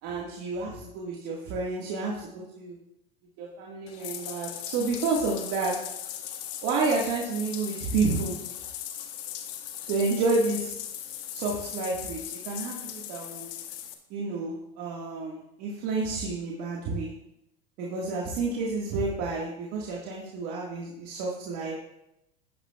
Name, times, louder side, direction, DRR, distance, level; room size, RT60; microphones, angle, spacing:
voice 1, 0.0-2.8 3.4-5.7 6.6-8.4 9.9-10.8 11.3-13.4 14.1-17.1 17.8-21.7, right 3 dB, 50° right, -3 dB, 1.9 m, -30 dB
Bathtub (filling or washing), 3.9-13.9, left 10 dB, 60° left, 1.3 m, -38 dB
12.5 x 9.5 x 2.4 m, 0.85 s
supercardioid pair, 120°, 30 cm